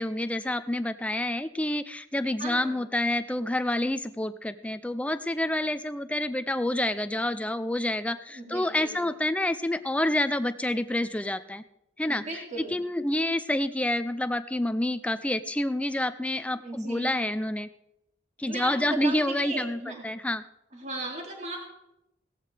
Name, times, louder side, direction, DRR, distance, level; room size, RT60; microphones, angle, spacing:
voice 1, 0.0-11.6 12.0-12.2 12.7-17.7 18.4-19.8 20.0-20.4, left 1 dB, 5° left, 12 dB, 0.5 m, -28 dB
voice 2, 2.4-2.8 8.3-9.2 12.0-12.8 16.6-17.2 18.4-20.0 20.7-21.6, right 2 dB, 40° right, 0 dB, 2.6 m, -37 dB
17.0 x 14.0 x 3.4 m, 0.85 s
head